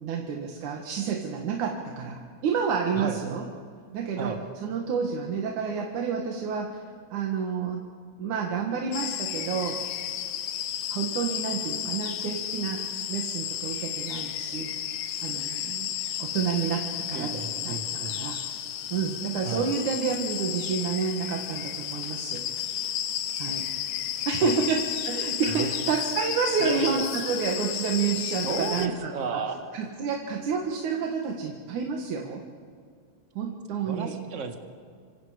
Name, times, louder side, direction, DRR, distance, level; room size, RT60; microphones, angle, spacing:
voice 1, 0.0-3.5 3.9-6.8 7.1-7.8 8.2-9.8 10.9-14.7 15.2-15.9 16.2-18.4 18.9-22.4 23.4-23.7 24.3-32.4 33.4-34.2, right 6 dB, 90° right, 1 dB, 3.1 m, -29 dB
sound 1, 8.9-28.9, left 11 dB, 75° left, 2.2 m, -33 dB
voice 2, 17.1-18.1 19.4-19.7 25.5-25.7 26.6-27.0 28.4-29.6 33.8-34.6, right 5 dB, 30° right, 5 dB, 1.6 m, -33 dB
29.5 x 25.5 x 5.0 m, 2.2 s
omnidirectional pair, 3.3 m